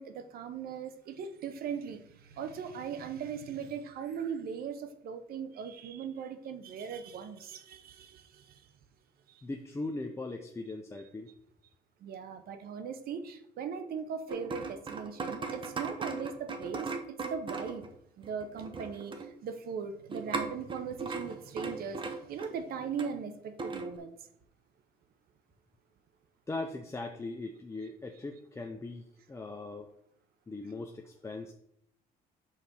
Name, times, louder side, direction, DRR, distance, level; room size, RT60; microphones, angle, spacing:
voice 1, 0.0-8.6 9.3-9.4 12.0-17.9 18.2-24.1, right 6 dB, 65° right, 9 dB, 0.9 m, -39 dB
voice 2, 9.4-11.3 26.5-29.9 30.5-31.5, left 2 dB, 15° left, 3 dB, 0.6 m, -39 dB
sound 1, 14.3-17.9 18.2-19.3 20.1-23.1 23.6-23.9, right 4 dB, 30° right, 1.0 m, -37 dB
5.7 x 4.1 x 6.2 m, 0.70 s
cardioid pair, 110°, 17 cm